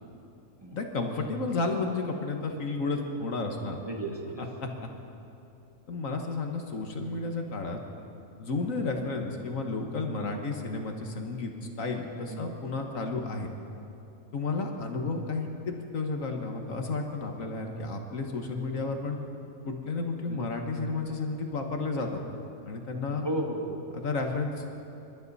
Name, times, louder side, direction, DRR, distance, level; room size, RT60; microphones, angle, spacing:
voice 1, 0.7-3.8 4.4-4.7 5.9-7.8 8.4-11.5 11.8-13.5 14.3-19.2 19.6-22.4 22.7-23.3 23.9-24.8, left 3 dB, 60° left, 3 dB, 1.6 m, -32 dB
voice 2, 3.8-4.4 10.2-10.3 12.3-12.4 20.3-20.5 23.2-23.9, right 1 dB, 15° right, -1 dB, 1.6 m, -34 dB
28.0 x 12.5 x 4.1 m, 2.9 s
omnidirectional pair, 1.6 m